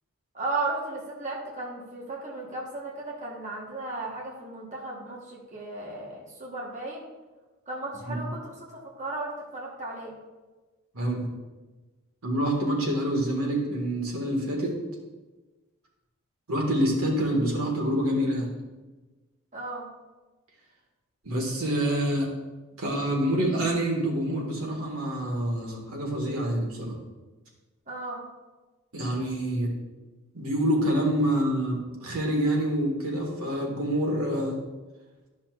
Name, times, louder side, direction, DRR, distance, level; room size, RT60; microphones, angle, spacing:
voice 1, 0.3-7.1 7.7-10.1 19.5-19.9 27.9-28.2, right 2 dB, 35° right, -3 dB, 1.2 m, -35 dB
voice 2, 10.9-11.3 12.2-14.7 16.5-18.5 21.2-22.3 22.8-27.0 28.9-29.7 30.3-34.6, right 1 dB, 80° right, -1 dB, 1.8 m, -27 dB
12.0 x 5.7 x 2.4 m, 1.2 s
head